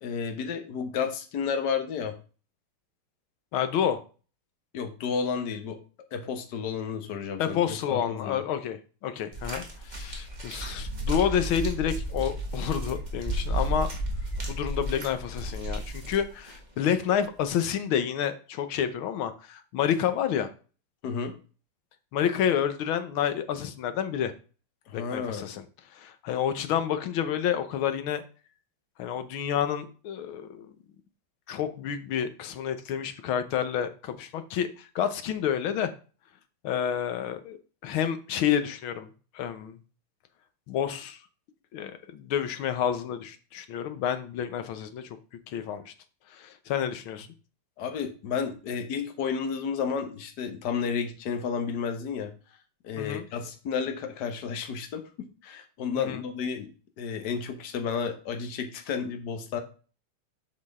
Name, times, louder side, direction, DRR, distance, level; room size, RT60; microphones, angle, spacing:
voice 1, 0.0-2.1 4.7-5.8 6.1-7.6 7.9-8.4 21.0-21.3 24.9-25.6 47.8-52.3 52.8-55.0 55.4-56.7 57.0-59.6, left 6 dB, 55° left, 5 dB, 1.6 m, -31 dB
voice 2, 3.5-4.0 7.4-13.9 14.5-20.5 22.1-24.3 24.9-25.6 25.9-28.2 29.0-30.7 31.5-35.9 36.6-37.6 37.8-39.1 39.3-39.8 40.7-41.2 41.7-45.2 45.5-45.9 46.3-47.3 53.0-53.3 56.0-56.2, left 9 dB, 70° left, 10 dB, 1.7 m, -29 dB
sound 1, 9.3-16.6 17.4-17.5, right 1 dB, 20° right, 1.7 m, -33 dB
7.7 x 6.1 x 3.6 m, 0.36 s
omnidirectional pair, 2.4 m